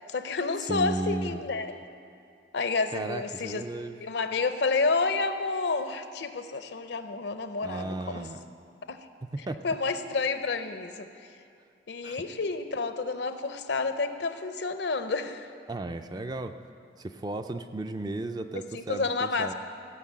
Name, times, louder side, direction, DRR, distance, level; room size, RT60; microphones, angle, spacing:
voice 1, 0.0-1.8 2.5-3.6 4.0-8.3 8.9-9.0 9.6-11.3 11.9-15.5 18.7-19.5, left 4 dB, 65° left, 9 dB, 0.6 m, -30 dB
voice 2, 0.6-1.4 2.9-4.0 7.6-8.4 9.3-9.6 12.0-12.2 15.7-16.6 17.0-19.5, right 2 dB, 20° right, 8 dB, 0.4 m, -34 dB
16.5 x 5.8 x 7.4 m, 2.4 s
head